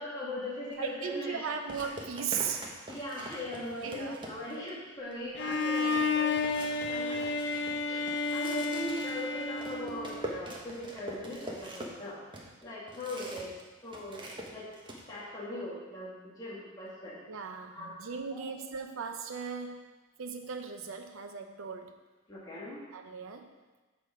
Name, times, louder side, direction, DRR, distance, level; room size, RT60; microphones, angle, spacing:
voice 1, 0.0-1.4 1.8-1.9 2.9-6.3 6.8-7.2 7.9-12.2 12.6-13.5 13.8-14.7 15.1-17.2 17.7-18.6 22.3-22.8, left 1 dB, 20° left, -8 dB, 1.6 m, -40 dB
sound 1, 0.7-0.9 1.7-4.7 5.1-5.2 5.5-13.6 13.9-15.0, right 1 dB, 25° right, 1.1 m, -44 dB
voice 2, 0.8-2.7 3.8-4.2 7.1-7.3 17.3-19.8 20.2-21.9 22.9-23.5, right 6 dB, 80° right, 5 dB, 0.7 m, -37 dB
Bowed string instrument, 5.4-10.4, left 3 dB, 55° left, 0.5 m, -31 dB
7.0 x 6.0 x 4.9 m, 1.2 s
head